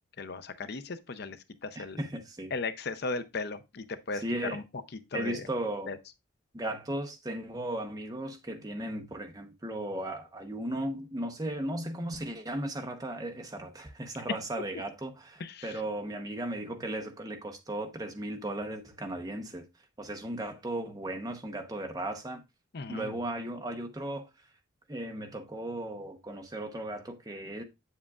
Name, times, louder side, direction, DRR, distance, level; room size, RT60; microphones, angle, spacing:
voice 1, 0.2-2.0 2.5-4.2 4.5-4.6 5.1-5.4 5.9-6.0 15.4-15.8 22.7-23.2, left 3 dB, 50° left, 0.6 m, -36 dB
voice 2, 1.8-2.5 4.2-4.6 5.1-5.9 6.5-19.6 20.0-22.4 22.9-24.3 24.9-27.6, right 1 dB, 20° right, 0.9 m, -36 dB
8.1 x 7.4 x 2.4 m
head